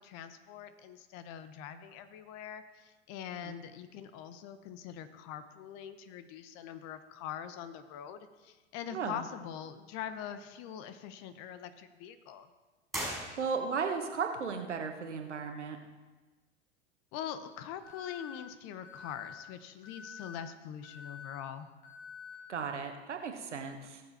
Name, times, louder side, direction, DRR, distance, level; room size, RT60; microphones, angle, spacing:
voice 1, 0.0-12.5 17.1-21.7, left 9 dB, 50° left, 11 dB, 1.1 m, -43 dB
voice 2, 8.9-9.3 13.1-15.8 22.5-24.0, right 5 dB, 85° right, 5 dB, 1.4 m, -36 dB
sound 1, 12.9-13.9, right 1 dB, ahead, 4.9 m, -39 dB
Alarm, 17.8-18.3 18.8-19.3 19.8-20.3 20.8-21.3 21.8-22.3, left 7 dB, 70° left, 4.5 m, -48 dB
18.5 x 7.4 x 4.3 m, 1.2 s
hypercardioid pair, 85°, 34 cm